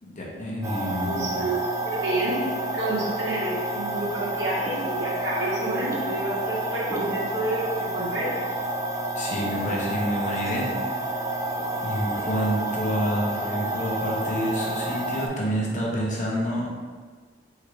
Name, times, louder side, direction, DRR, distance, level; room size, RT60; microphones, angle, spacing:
voice 1, 0.0-1.3 9.1-10.7 11.8-16.8, equal, 45° left, -4 dB, 0.9 m, -28 dB
sound 1, 0.6-15.3, right 2 dB, 15° right, 0.4 m, -29 dB
voice 2, 1.0-2.4 2.7-8.3, right 1 dB, 80° right, -5 dB, 1.3 m, -29 dB
3.8 x 3.6 x 3.3 m, 1.5 s
head